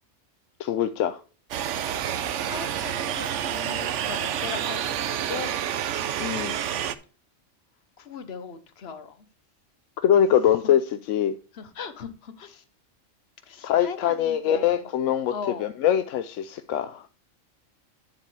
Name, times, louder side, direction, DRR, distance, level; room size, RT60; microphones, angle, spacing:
voice 1, 0.6-1.2 6.2-6.6 10.0-11.3 13.6-15.3 15.6-17.0, left 10 dB, 80° left, 0.9 m, -23 dB
sound 1, 1.5-7.0, right 10 dB, 75° right, 1.0 m, -29 dB
voice 2, 2.4-5.5 8.0-9.2 11.5-12.6 13.5-14.8 15.3-15.7, left 6 dB, 55° left, 1.2 m, -38 dB
9.8 x 7.5 x 3.3 m
omnidirectional pair, 1.3 m